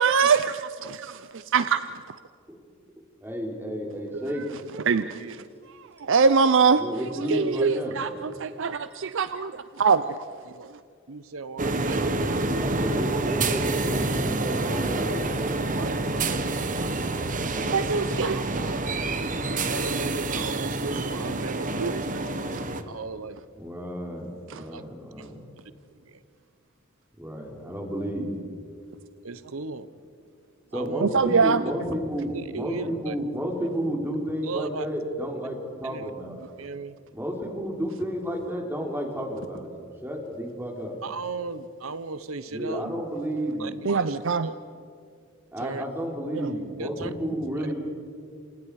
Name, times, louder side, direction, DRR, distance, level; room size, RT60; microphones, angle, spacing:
voice 1, 0.0-1.0 1.5-1.8 4.9-5.2 6.0-6.8 7.3-10.2 17.7-18.4 21.8-21.9 24.5-24.6 31.0-31.6 43.8-44.5 46.3-46.4, right 5 dB, 65° right, 12 dB, 0.6 m, -22 dB
voice 2, 3.2-4.6 6.7-8.0 12.5-15.5 17.2-17.8 23.6-25.4 27.2-28.4 30.7-36.4 37.1-40.9 42.5-43.8 45.5-47.7, equal, 10° right, 0 dB, 3.7 m, -32 dB
voice 3, 11.1-12.9 15.8-16.7 18.3-18.8 19.2-22.5 22.7-23.4 24.7-24.8 26.0-26.2 29.2-29.9 30.7-31.0 31.4-31.5 32.3-33.1 34.4-34.9 35.8-36.1 36.6-37.0 41.0-42.8 43.6-44.6 45.6-45.8 46.8-47.1, right 4 dB, 90° right, 14 dB, 1.0 m, -36 dB
sound 1, 11.6-22.8, right 2 dB, 40° right, 1.3 m, -27 dB
28.0 x 27.5 x 4.9 m, 2.3 s
head